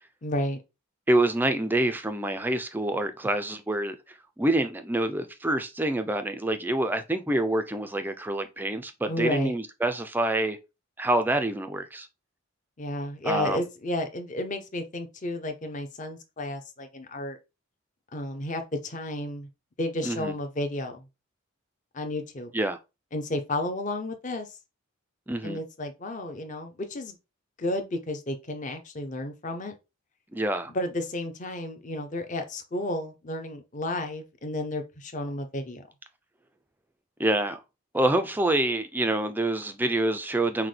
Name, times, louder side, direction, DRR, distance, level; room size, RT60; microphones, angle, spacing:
voice 1, 0.2-0.6 9.1-9.5 12.8-17.4 18.1-19.5 19.8-21.0 21.9-22.5 23.1-24.6 25.4-27.2 27.6-29.7 30.7-35.9, left 1 dB, 35° left, 0.6 m, -32 dB
voice 2, 1.1-10.6 11.0-12.1 13.2-13.6 20.0-20.3 22.5-22.8 25.3-25.6 30.3-30.7 37.2-37.6 37.9-40.7, right 1 dB, 10° right, 0.3 m, -26 dB
5.7 x 2.2 x 3.2 m
head